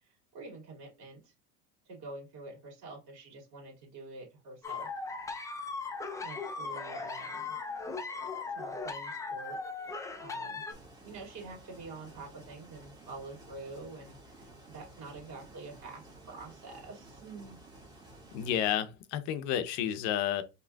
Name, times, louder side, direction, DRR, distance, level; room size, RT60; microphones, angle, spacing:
voice 1, 0.0-1.3 1.8-4.9 6.2-7.6 8.5-10.6 11.0-17.6, right 3 dB, 55° right, 2.5 m, -47 dB
sound 1, 4.6-10.7, left 4 dB, 10° left, 0.4 m, -38 dB
sound 2, 10.7-18.8, right 2 dB, 10° right, 1.7 m, -53 dB
voice 2, 18.3-20.4, left 10 dB, 60° left, 0.7 m, -31 dB
4.9 x 3.1 x 2.3 m
supercardioid pair, 130°, 32 cm